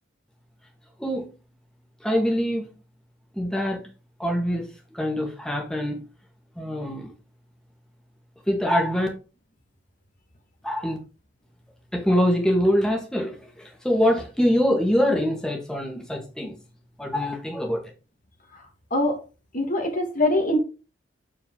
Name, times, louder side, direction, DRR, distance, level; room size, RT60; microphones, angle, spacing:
voice 1, 1.0-1.3 2.0-2.7 3.3-3.9 4.2-4.7 4.9-6.1 6.6-7.1 8.5-9.1 10.6-11.0 11.9-16.6 17.0-17.8, equal, 5° left, 0 dB, 1.7 m, -24 dB
voice 2, 19.5-20.6, left 1 dB, 45° left, 3 dB, 1.6 m, -23 dB
7.5 x 5.0 x 3.7 m, 0.33 s
head